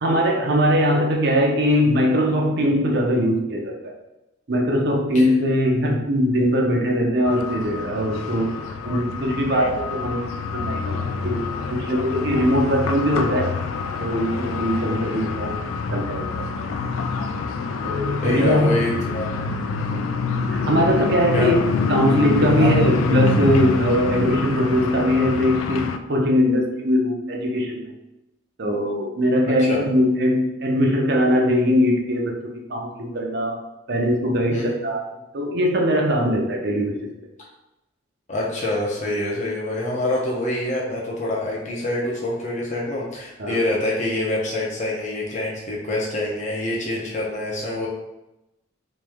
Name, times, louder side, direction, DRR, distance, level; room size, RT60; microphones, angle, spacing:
voice 1, 0.0-3.9 4.5-8.5 8.8-11.4 11.7-13.6 14.0-15.6 15.9-16.5 17.8-18.8 20.5-27.9 28.6-33.6 33.9-35.0 35.3-37.0 43.4-43.6, equal, 55° right, 0 dB, 0.6 m, -21 dB
sound 1, 7.2-26.0, left 4 dB, 85° left, 0.3 m, -26 dB
voice 2, 18.2-19.3 19.8-20.1 21.3-21.5 22.6-22.8 29.6-29.8 34.5-34.7 38.3-47.9, left 1 dB, 35° left, -4 dB, 0.7 m, -26 dB
3.2 x 3.1 x 3.4 m, 0.94 s
head